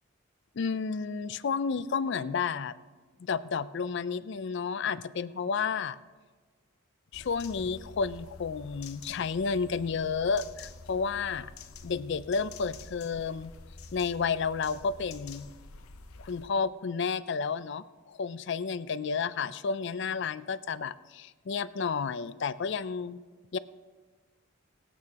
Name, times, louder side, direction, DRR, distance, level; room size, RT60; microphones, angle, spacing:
voice 1, 0.6-2.7 3.2-6.0 7.1-11.5 11.8-13.5 13.9-15.5 16.2-23.2 23.5-23.6, left 5 dB, 55° left, 15 dB, 0.4 m, -31 dB
sound 1, 7.1-16.5, left 3 dB, 85° left, 0.7 m, -48 dB
24.0 x 8.7 x 2.9 m, 1.4 s
head